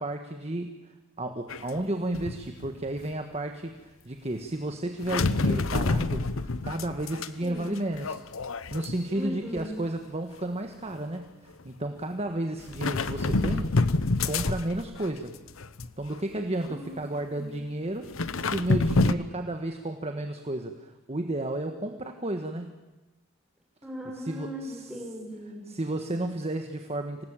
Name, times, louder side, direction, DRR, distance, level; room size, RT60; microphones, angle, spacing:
voice 1, 0.0-6.3 6.6-8.2 8.7-13.8 14.2-15.3 16.0-22.7 24.1-24.9 25.7-27.2, right 1 dB, 30° right, 5 dB, 1.4 m, -32 dB
sound 1, 1.5-1.8 2.1-3.0 5.0-7.3 7.6-9.3 9.6-9.9 11.0-11.1 12.7-15.1 15.5-16.2 16.6-16.7 18.0-19.1, left 3 dB, 75° left, 1.0 m, -27 dB
voice 2, 7.4-7.8 9.1-9.7 16.6-17.6 23.8-25.7, equal, 5° right, 0 dB, 6.8 m, -39 dB
26.5 x 18.5 x 9.0 m, 1.1 s
head